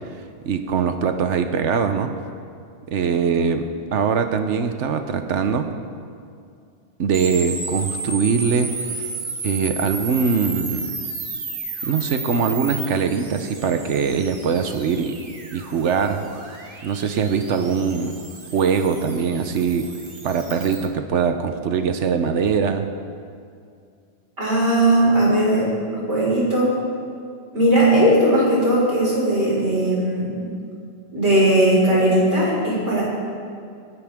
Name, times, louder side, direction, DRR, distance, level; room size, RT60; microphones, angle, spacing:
voice 1, 0.4-2.1 2.9-5.7 7.0-9.1 9.4-10.9 11.8-15.2 15.5-16.3 16.8-18.2 18.5-19.9 20.2-22.8, right 6 dB, 85° right, 7 dB, 1.1 m, -22 dB
sound 1, 7.1-20.8, right 3 dB, 50° right, 1.5 m, -33 dB
voice 2, 24.4-26.8 27.5-30.4 31.1-33.0, right 1 dB, 70° right, -6 dB, 5.1 m, -18 dB
25.5 x 11.0 x 3.6 m, 2.3 s
omnidirectional pair, 1.2 m